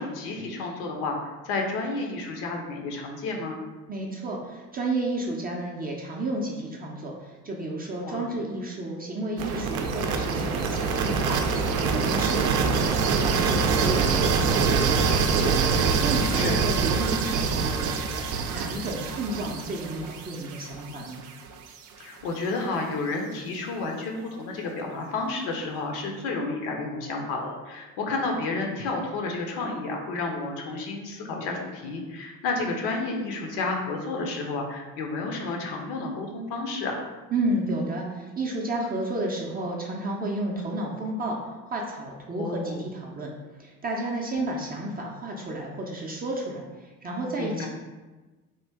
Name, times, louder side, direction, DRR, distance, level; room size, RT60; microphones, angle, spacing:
voice 1, 0.0-3.6 8.0-8.2 16.3-16.6 22.0-37.0 42.4-42.8 47.4-47.7, left 3 dB, 55° left, 1 dB, 0.8 m, -31 dB
voice 2, 3.9-21.2 37.3-41.4 41.7-47.7, right 2 dB, 20° right, -2 dB, 0.5 m, -32 dB
sound 1, 9.4-21.3, right 5 dB, 70° right, 0.5 m, -25 dB
3.1 x 2.4 x 3.4 m, 1.2 s
figure-of-eight pair, 60°, 45 cm